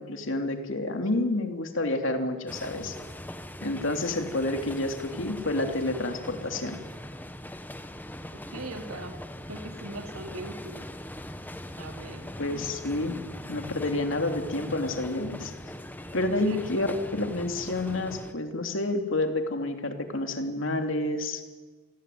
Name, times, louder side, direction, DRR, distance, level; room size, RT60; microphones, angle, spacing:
voice 1, 0.0-2.9 3.6-6.8 12.4-13.2 13.5-15.5 16.1-16.9 17.1-21.5, left 2 dB, 60° left, 5 dB, 3.3 m, -29 dB
sound 1, 2.5-18.3, left 1 dB, 10° left, 1.2 m, -41 dB
voice 2, 8.3-9.2 9.5-10.9 11.8-12.6 12.9-13.3 14.7-14.8 15.4-15.5 16.3-17.1, right 2 dB, 80° right, 5 dB, 3.3 m, -41 dB
28.5 x 20.5 x 9.5 m, 1.4 s
head